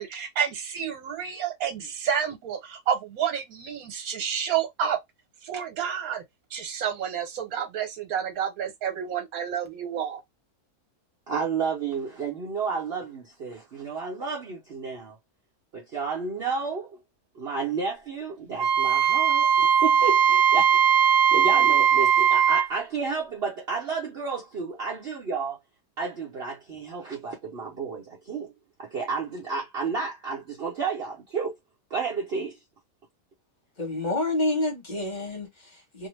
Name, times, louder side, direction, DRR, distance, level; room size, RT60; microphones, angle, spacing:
voice 1, 0.0-5.0 5.4-6.2 6.5-10.2, right 8 dB, 70° right, 1.3 m, -29 dB
voice 2, 11.3-15.2 15.7-17.0 17.3-25.6 26.0-28.5 28.8-31.5 31.9-32.6, right 5 dB, 50° right, 0.8 m, -31 dB
Wind instrument woodwind instrument, 18.6-22.7, right 8 dB, 90° right, 0.5 m, -19 dB
voice 3, 33.8-36.1, left 2 dB, 30° left, 1.2 m, -28 dB
2.8 x 2.1 x 3.0 m
omnidirectional pair, 1.7 m